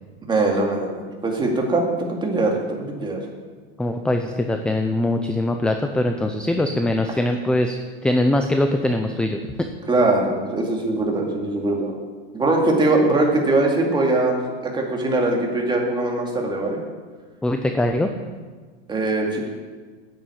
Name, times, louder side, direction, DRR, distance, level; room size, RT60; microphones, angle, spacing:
voice 1, 0.3-3.3 9.9-11.9 12.3-16.8 18.9-19.5, right 2 dB, 15° right, 0 dB, 2.3 m, -21 dB
voice 2, 3.8-7.7 8.0-9.4 17.4-18.1, left 1 dB, 5° left, 5 dB, 0.5 m, -22 dB
9.9 x 7.8 x 8.4 m, 1.4 s
supercardioid pair, 130°, 31 cm